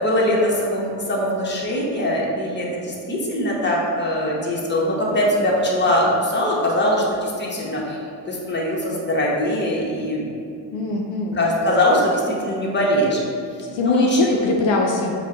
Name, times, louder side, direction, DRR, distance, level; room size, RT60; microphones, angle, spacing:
voice 1, 0.0-10.3 11.3-13.2 13.8-14.4, left 1 dB, 25° left, -4 dB, 1.0 m, -22 dB
voice 2, 10.7-11.4 13.7-15.1, left 2 dB, 75° left, 0 dB, 0.5 m, -21 dB
4.3 x 2.3 x 3.7 m, 2.5 s
supercardioid pair, 65°, 44 cm